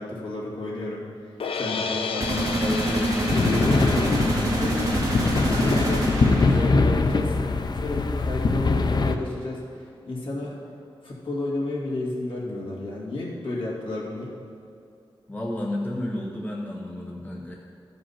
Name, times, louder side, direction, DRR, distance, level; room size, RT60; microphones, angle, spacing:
voice 1, 0.0-10.6 11.0-14.3, left 2 dB, 65° left, -5 dB, 2.5 m, -32 dB
sound 1, 1.4-7.6, left 5 dB, 85° left, 0.6 m, -34 dB
sound 2, 2.2-6.9, right 1 dB, 40° right, 2.2 m, -26 dB
sound 3, 3.3-9.1, left 3 dB, 50° left, 0.5 m, -23 dB
voice 2, 15.3-17.5, left 1 dB, 20° left, -2 dB, 1.0 m, -31 dB
14.5 x 5.3 x 5.8 m, 2.6 s
wide cardioid pair, 140°, 9 cm